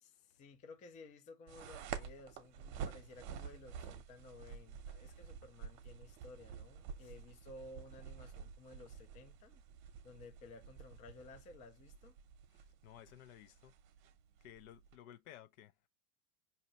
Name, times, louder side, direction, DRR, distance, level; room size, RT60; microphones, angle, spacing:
voice 1, 0.0-9.6 10.0-12.2, left 3 dB, 15° left, 0.4 m, -56 dB
sound 1, 1.5-15.0, right 7 dB, 45° right, 0.9 m, -50 dB
voice 2, 12.5-13.7 14.4-15.9, left 11 dB, 65° left, 0.7 m, -57 dB
5.0 x 2.8 x 2.8 m
supercardioid pair, 135°, 45 cm